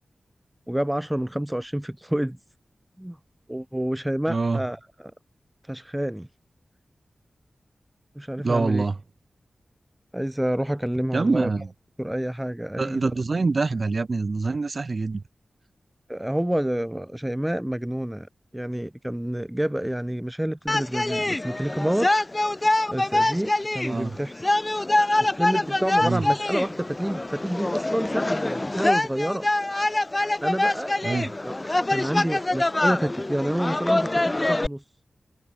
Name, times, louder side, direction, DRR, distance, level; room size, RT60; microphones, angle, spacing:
voice 1, 0.7-2.4 3.0-3.2 3.5-5.1 5.7-6.3 8.2-8.8 10.1-11.5 12.0-13.1 16.1-18.3 18.5-22.1 22.9-24.3 25.2-29.5 30.4-30.9 31.4-34.8, right 1 dB, 10° right, 5.8 m, -28 dB
voice 2, 4.3-4.6 8.4-9.0 11.1-11.7 12.8-15.2 23.9-24.1 26.0-26.2 31.0-31.3, right 3 dB, 50° right, 6.5 m, -25 dB
sound 1, 20.7-34.7, left 2 dB, 25° left, 7.9 m, -25 dB
wide cardioid pair, 75°, 0 cm